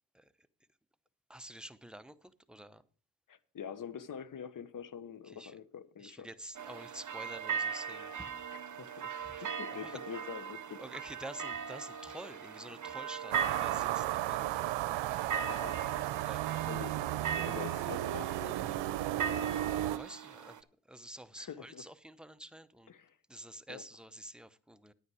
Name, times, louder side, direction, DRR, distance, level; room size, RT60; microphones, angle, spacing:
voice 1, 1.3-2.1 2.5-2.8 5.4-5.5 6.2-8.1 10.8-14.6 16.2-16.4 19.9-20.5 20.9-22.9 23.3-24.9, right 1 dB, ahead, 0.7 m, -48 dB
voice 2, 3.3-6.4 8.5-9.1 9.4-10.9 15.5-15.8 16.7-17.0 17.5-19.4 21.4-21.9 22.9-23.2 23.7-23.9, left 8 dB, 45° left, 1.2 m, -46 dB
sound 1, 6.5-20.6, right 6 dB, 40° right, 1.2 m, -40 dB
sound 2, 13.3-20.0, right 14 dB, 75° right, 0.8 m, -34 dB
9.7 x 9.5 x 4.8 m
supercardioid pair, 65°, 44 cm